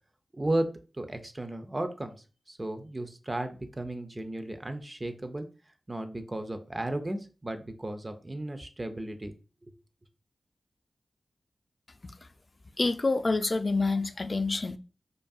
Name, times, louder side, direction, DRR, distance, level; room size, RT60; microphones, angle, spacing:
voice 1, 0.3-0.7 1.0-2.2 2.5-5.5 5.9-9.3 9.6-9.7, right 1 dB, 25° right, 0.4 m, -34 dB
voice 2, 12.8-14.8, left 3 dB, 35° left, 0.3 m, -27 dB
5.1 x 2.5 x 2.3 m
wide cardioid pair, 95°, 0 cm